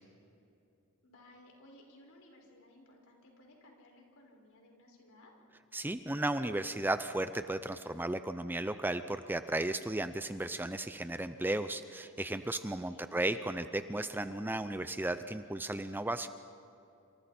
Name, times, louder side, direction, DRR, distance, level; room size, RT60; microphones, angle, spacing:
voice 1, 1.0-5.3 12.7-13.2, left 1 dB, 65° left, 0 dB, 5.6 m, -59 dB
voice 2, 5.7-16.3, right 1 dB, 10° right, 10 dB, 0.5 m, -35 dB
27.5 x 27.0 x 4.4 m, 2.7 s
head